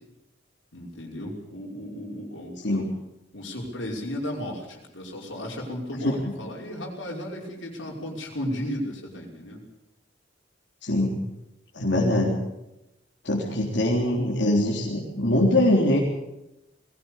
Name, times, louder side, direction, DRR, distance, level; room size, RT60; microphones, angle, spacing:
voice 1, 0.7-2.5 3.3-9.6, equal, 85° left, -2 dB, 5.6 m, -34 dB
voice 2, 10.8-11.2 11.7-12.4 13.2-16.0, left 1 dB, 65° left, -4 dB, 3.9 m, -22 dB
21.0 x 17.5 x 8.4 m, 0.93 s
head